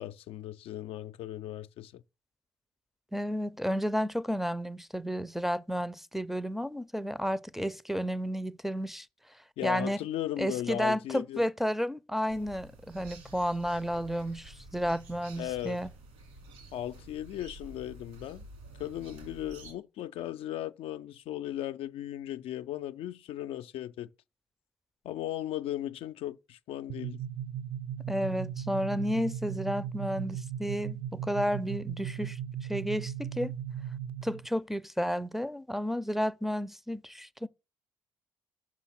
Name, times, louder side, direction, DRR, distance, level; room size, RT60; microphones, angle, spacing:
voice 1, 0.0-2.0 9.6-11.4 15.4-15.8 16.7-18.4 18.8-24.1 25.0-27.2, left 12 dB, 65° left, 0.4 m, -37 dB
voice 2, 3.1-9.1 9.6-10.0 10.4-15.9 28.1-32.4 32.7-33.5 34.2-37.5, equal, 5° right, 0.5 m, -32 dB
sound 1, 12.3-19.7, right 2 dB, 80° right, 2.3 m, -50 dB
sound 2, 26.9-34.5, right 9 dB, 55° right, 0.6 m, -37 dB
6.2 x 5.6 x 5.8 m
hypercardioid pair, 55°, 11 cm